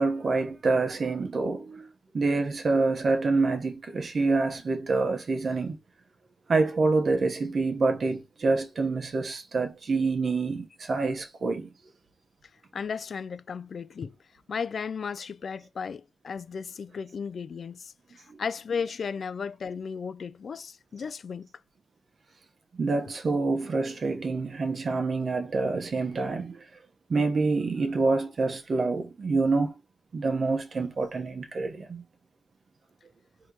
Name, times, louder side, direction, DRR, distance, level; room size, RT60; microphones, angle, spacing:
voice 1, 0.0-1.9 2.1-5.8 6.5-11.7 18.3-18.4 22.7-26.6 27.1-29.7 30.1-32.0, right 3 dB, 50° right, 1.1 m, -27 dB
voice 2, 12.7-14.1 14.5-21.5, left 6 dB, 60° left, 0.4 m, -35 dB
4.4 x 3.0 x 3.7 m
cardioid pair, 75°, 0 cm